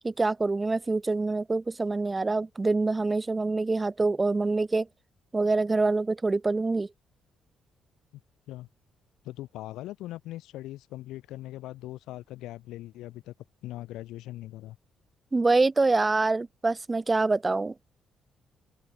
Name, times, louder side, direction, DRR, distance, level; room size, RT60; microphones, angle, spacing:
voice 1, 0.0-4.9 5.3-6.9 15.3-17.7, right 3 dB, 20° right, 0.7 m, -25 dB
voice 2, 9.2-13.3 13.6-14.8, left 15 dB, 90° left, 3.0 m, -40 dB
open air
cardioid pair, 90°, 0 cm